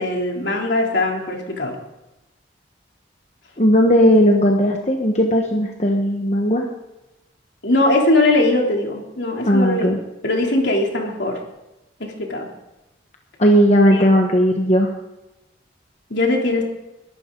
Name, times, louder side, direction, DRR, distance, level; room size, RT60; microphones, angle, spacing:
voice 1, 0.0-1.8 7.6-10.0 10.2-11.4 12.0-12.5 13.9-14.0 16.1-16.6, left 2 dB, 70° left, 0 dB, 3.2 m, -20 dB
voice 2, 3.6-6.7 9.5-10.0 13.4-14.9, equal, 35° left, 1 dB, 1.2 m, -16 dB
22.0 x 12.0 x 3.9 m, 0.99 s
head